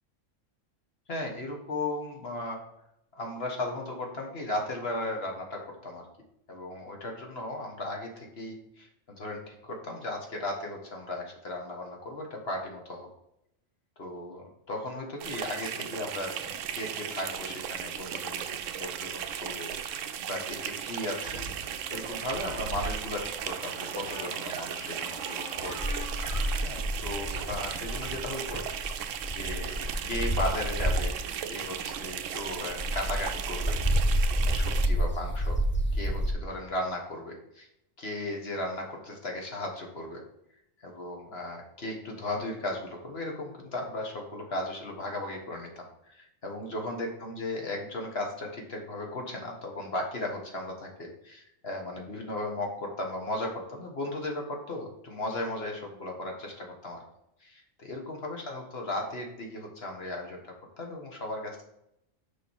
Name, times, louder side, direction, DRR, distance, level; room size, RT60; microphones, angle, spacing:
voice 1, 1.1-2.6 3.1-6.0 6.5-13.1 14.0-20.0 20.3-21.4 21.9-25.8 26.6-28.6 28.9-29.0 29.3-31.2 31.5-33.7 34.4-35.6 35.9-37.7 38.0-40.2 40.8-57.0 57.4-61.6, left 1 dB, 50° left, 1 dB, 1.5 m, -36 dB
sound 1, 15.2-34.9, right 9 dB, 75° right, 0.9 m, -36 dB
sound 2, 20.9-28.3, right 1 dB, 40° right, 2.3 m, -45 dB
sound 3, 25.8-31.3 31.7-36.3, equal, 10° left, 0.7 m, -29 dB
6.7 x 4.9 x 4.6 m, 0.78 s
omnidirectional pair, 1.3 m